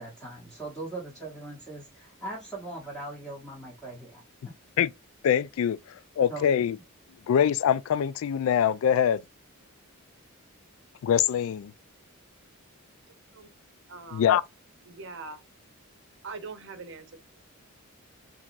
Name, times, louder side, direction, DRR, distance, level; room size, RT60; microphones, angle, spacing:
voice 1, 0.0-4.5 6.3-6.6, right 2 dB, 5° left, 1.0 m, -40 dB
voice 2, 5.2-5.8 6.2-6.8 7.3-9.2 11.0-11.7 14.1-14.4, left 9 dB, 75° left, 0.3 m, -23 dB
voice 3, 13.1-13.5 13.9-14.3 14.8-15.4 16.2-17.3, right 4 dB, 60° right, 0.7 m, -42 dB
3.6 x 2.9 x 2.5 m
head